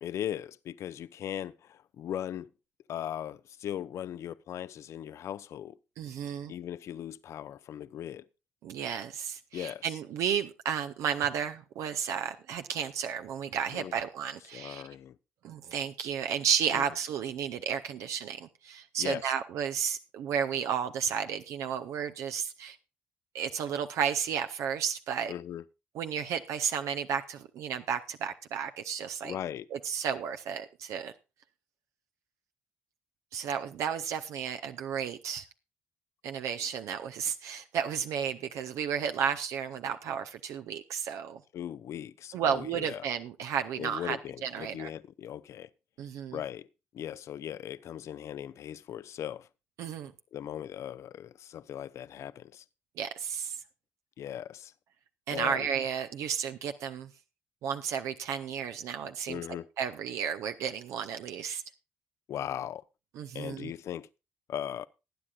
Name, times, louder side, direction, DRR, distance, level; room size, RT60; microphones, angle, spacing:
voice 1, 0.0-2.5 2.9-5.8 6.5-8.3 9.5-9.9 13.7-14.0 14.5-15.2 16.7-16.8 19.0-19.3 25.3-25.6 29.2-29.7 41.5-43.0 43.8-45.7 46.3-46.7 46.9-49.5 50.3-52.6 54.2-54.7 55.3-55.7 59.3-59.7 62.3-62.8 63.3-64.1 64.5-64.9, left 10 dB, 65° left, 0.6 m, -38 dB
voice 2, 6.0-6.5 8.6-14.8 15.4-22.8 23.3-25.3 25.9-29.4 29.7-31.1 33.3-35.4 36.2-41.4 42.3-44.9 46.0-46.4 49.8-50.1 53.0-53.6 55.3-57.1 57.6-59.4 59.8-61.6 63.2-63.7, right 8 dB, 70° right, 0.7 m, -33 dB
19.5 x 9.8 x 2.4 m
hypercardioid pair, 50°, 5 cm